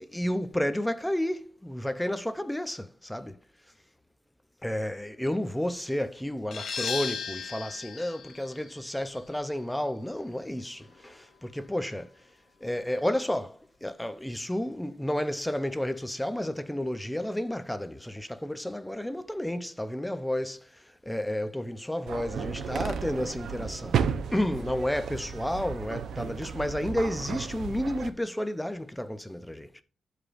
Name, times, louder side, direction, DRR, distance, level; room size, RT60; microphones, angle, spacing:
voice 1, 0.0-3.4 4.6-12.1 12.6-24.0 24.3-29.7, left 1 dB, 5° left, 0.5 m, -31 dB
sound 1, 6.5-11.9, left 6 dB, 65° left, 1.0 m, -38 dB
sound 2, 22.1-28.1, right 7 dB, 80° right, 0.6 m, -33 dB
12.5 x 4.9 x 2.5 m
wide cardioid pair, 135°, 0 cm